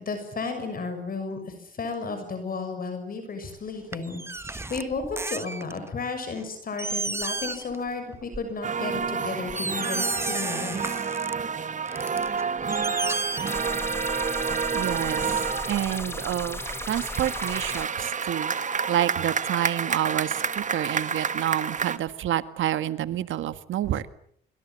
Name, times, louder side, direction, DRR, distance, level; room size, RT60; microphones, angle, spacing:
voice 1, 0.0-10.8, left 4 dB, 45° left, 7 dB, 6.7 m, -33 dB
sound 1, 3.9-5.9 6.4-6.5 6.8-7.8 8.1-8.4 9.0-9.1 9.5-11.3 11.9-13.9 14.2-14.3, right 2 dB, 10° right, 1.0 m, -32 dB
sound 2, 8.6-22.0, right 6 dB, 40° right, 1.6 m, -29 dB
sound 3, 13.5-17.9, left 2 dB, 10° left, 1.6 m, -35 dB
voice 2, 14.7-15.2 15.7-16.6 16.9-18.5 18.9-24.0, right 12 dB, 75° right, 12 dB, 1.7 m, -28 dB
24.5 x 24.5 x 7.6 m, 0.66 s
cardioid pair, 90°, 20 cm